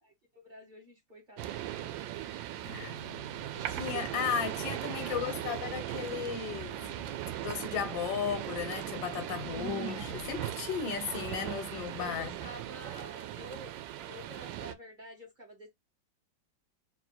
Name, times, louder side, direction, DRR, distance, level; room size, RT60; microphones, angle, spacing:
voice 1, 0.0-4.0 12.0-15.7, right 1 dB, 30° right, 1.3 m, -50 dB
sound 1, 1.4-14.7, right 12 dB, 90° right, 1.3 m, -39 dB
Strum, 2.6-9.0, right 2 dB, 50° right, 2.0 m, -53 dB
voice 2, 3.8-6.7 7.4-12.3, left 7 dB, 80° left, 1.6 m, -35 dB
sound 2, 6.4-7.4 8.1-10.5 11.4-12.5, right 2 dB, 70° right, 1.8 m, -44 dB
4.1 x 2.1 x 4.2 m
omnidirectional pair, 2.0 m